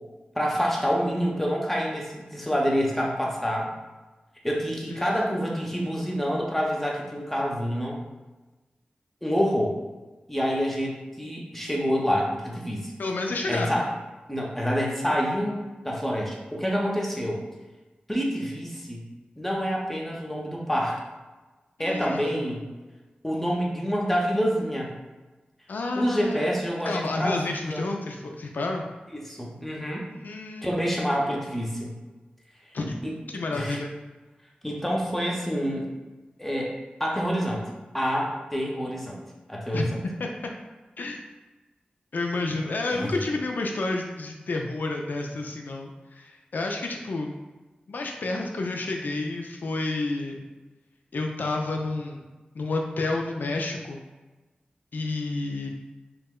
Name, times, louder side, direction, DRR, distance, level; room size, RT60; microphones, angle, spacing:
voice 1, 0.4-3.7 4.4-8.0 9.2-9.7 10.3-12.9 13.5-13.9 14.3-17.4 18.1-19.0 19.4-21.0 21.8-22.6 23.2-24.9 26.0-27.9 29.1-30.1 30.6-31.9 33.0-33.1 33.5-33.8 34.6-35.9 36.4-36.7 37.0-37.6 37.9-39.2 39.5-39.9 42.9-43.3, equal, 5° left, -2 dB, 0.6 m, -27 dB
voice 2, 13.0-13.8 21.8-22.7 25.7-26.5 26.8-28.8 30.1-30.8 32.7-32.9 33.3-33.9 39.7-39.9 40.2-40.3 41.0-41.2 42.1-47.3 47.9-50.5 51.1-52.2 52.5-54.0 54.9-55.7, left 2 dB, 75° left, 1 dB, 0.3 m, -30 dB
2.9 x 2.1 x 3.5 m, 1.2 s
wide cardioid pair, 70°, 3 cm